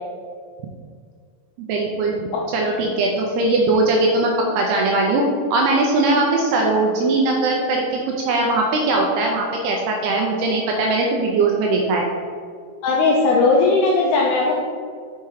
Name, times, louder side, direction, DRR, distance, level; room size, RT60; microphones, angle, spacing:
voice 1, 1.7-5.2 5.5-7.8 8.2-12.1, right 2 dB, 80° right, 0 dB, 2.4 m, -20 dB
voice 2, 12.8-14.5, left 3 dB, 80° left, -2 dB, 2.2 m, -17 dB
5.8 x 5.7 x 4.8 m, 2.1 s
omnidirectional pair, 5.1 m